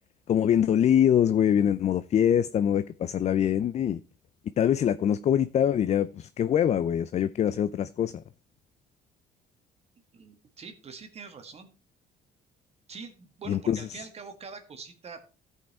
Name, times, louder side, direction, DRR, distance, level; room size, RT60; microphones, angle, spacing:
voice 1, 0.3-4.0 4.6-8.2 13.5-13.8, left 9 dB, 40° left, 0.4 m, -24 dB
voice 2, 10.1-11.7 12.9-15.2, right 5 dB, 40° right, 1.6 m, -44 dB
13.5 x 5.6 x 4.3 m
cardioid pair, 110°, 17 cm